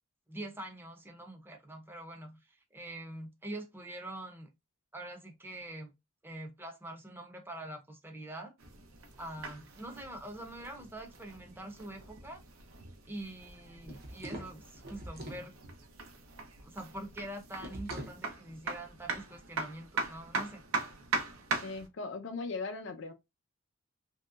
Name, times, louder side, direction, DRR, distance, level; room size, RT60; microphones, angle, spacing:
voice 1, 0.3-4.5 4.9-5.9 6.2-8.5 9.2-12.4 13.1-15.5 16.6-20.6, right 1 dB, 10° right, 0.6 m, -44 dB
sound 1, 8.6-21.9, right 3 dB, 80° right, 0.7 m, -41 dB
sound 2, 13.8-15.5 17.6-18.2, right 1 dB, 45° right, 0.7 m, -43 dB
voice 2, 21.6-23.1, left 3 dB, 60° left, 0.6 m, -38 dB
3.0 x 2.7 x 2.3 m
head